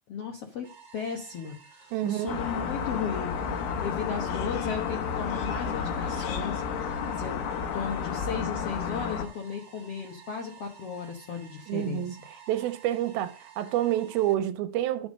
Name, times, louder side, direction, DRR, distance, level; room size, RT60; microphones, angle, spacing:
voice 1, 0.1-0.7 0.9-6.6 7.1-7.4 7.7-12.2, left 6 dB, 70° left, 1.4 m, -35 dB
sound 1, 0.6-14.3, right 6 dB, 40° right, 2.0 m, -52 dB
voice 2, 1.9-2.4 11.7-12.2 12.5-15.1, right 13 dB, 80° right, 2.5 m, -28 dB
sound 2, 2.3-9.3, left 6 dB, 85° left, 3.1 m, -31 dB
12.0 x 5.4 x 5.3 m
omnidirectional pair, 4.4 m